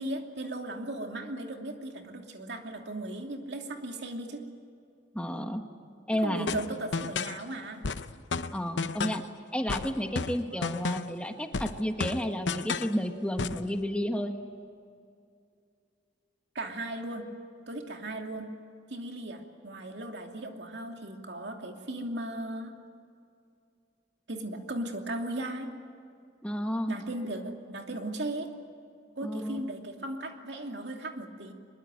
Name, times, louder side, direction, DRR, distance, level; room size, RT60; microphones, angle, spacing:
voice 1, 0.0-4.4 6.1-7.9 10.5-10.6 16.5-17.3 17.7-18.6 18.9-22.7 24.3-25.7 26.9-28.5 29.2-31.5, right 1 dB, 65° right, 3 dB, 2.8 m, -37 dB
voice 2, 5.1-5.6 6.1-6.5 8.5-9.2 9.5-14.3 26.4-27.0 29.2-29.6, equal, 5° left, 5 dB, 1.4 m, -31 dB
sound 1, 6.5-7.4 7.8-9.3 9.7-11.2 11.5-13.0 13.4-13.7, left 4 dB, 80° left, 0.8 m, -32 dB
24.0 x 22.0 x 9.2 m, 2.4 s
head